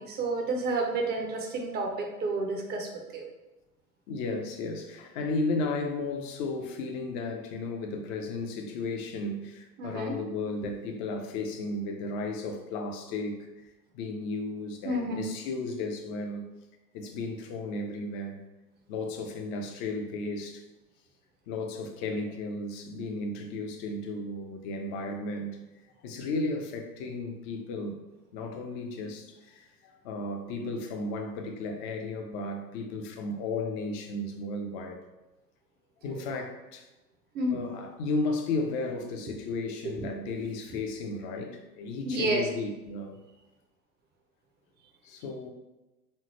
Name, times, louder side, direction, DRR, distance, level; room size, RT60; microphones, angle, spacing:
voice 1, 0.0-3.2 9.8-10.1 14.8-15.3 36.1-36.3 37.3-37.6 39.8-39.9 42.0-42.5, right 2 dB, 20° right, 0.6 m, -30 dB
voice 2, 4.1-13.5 13.9-16.4 16.9-18.4 18.9-20.6 21.5-25.6 26.0-28.0 28.3-35.0 36.0-36.9 37.5-43.2 45.0-45.5, left 3 dB, 35° left, 0.5 m, -34 dB
3.6 x 3.2 x 3.1 m
figure-of-eight pair, 85°, 46 cm